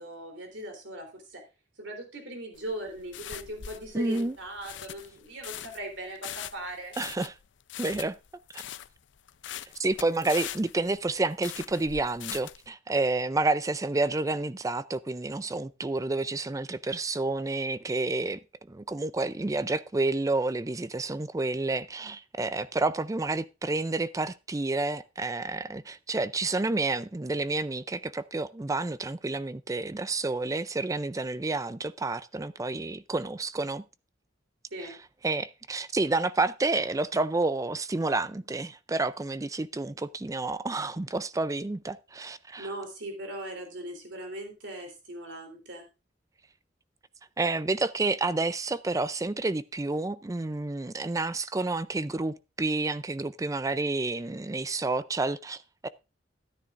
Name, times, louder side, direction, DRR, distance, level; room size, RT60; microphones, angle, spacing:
voice 1, 0.0-1.4 1.8-6.9 34.7-35.0 42.6-45.8, right 1 dB, 80° right, 3.4 m, -39 dB
sound 1, 2.5-12.7, left 11 dB, 75° left, 0.5 m, -41 dB
voice 2, 3.9-4.3 7.0-7.3 7.8-8.2 8.5-8.6 9.8-18.4 18.7-33.8 34.8-34.9 35.2-42.7 47.4-55.9, right 2 dB, 20° right, 0.4 m, -29 dB
13.5 x 9.6 x 2.5 m
head